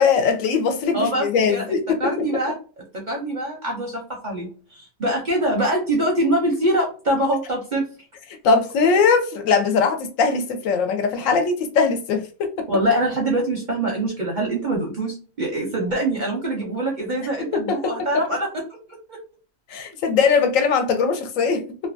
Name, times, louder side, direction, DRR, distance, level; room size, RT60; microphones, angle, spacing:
voice 1, 0.0-2.4 8.4-12.7 17.5-17.9 19.7-21.6, left 5 dB, 75° left, 0.9 m, -20 dB
voice 2, 0.9-1.6 2.0-2.6 3.1-7.9 12.7-18.5 19.1-19.2, right 1 dB, 50° right, 0.6 m, -24 dB
2.5 x 2.2 x 2.5 m
omnidirectional pair, 1.5 m